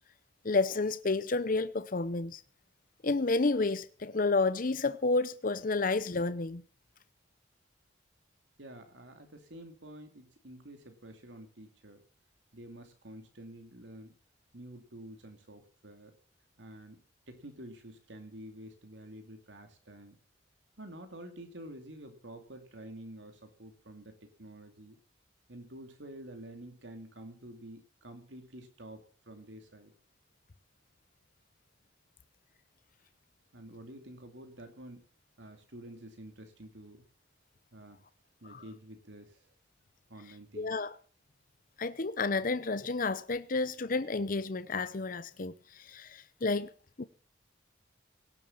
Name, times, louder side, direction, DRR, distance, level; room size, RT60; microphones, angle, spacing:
voice 1, 0.4-2.4 3.0-6.6 38.5-38.6 40.6-40.9 41.8-46.7 47.0-47.1, left 3 dB, 45° left, 0.7 m, -30 dB
voice 2, 8.6-12.0 12.5-14.2 14.5-16.1 16.6-20.2 20.8-25.0 25.5-29.9 33.5-35.0 35.4-37.0 37.7-38.0 38.4-39.5 40.1-40.7, right 1 dB, 70° right, 2.5 m, -49 dB
18.0 x 8.0 x 7.2 m
head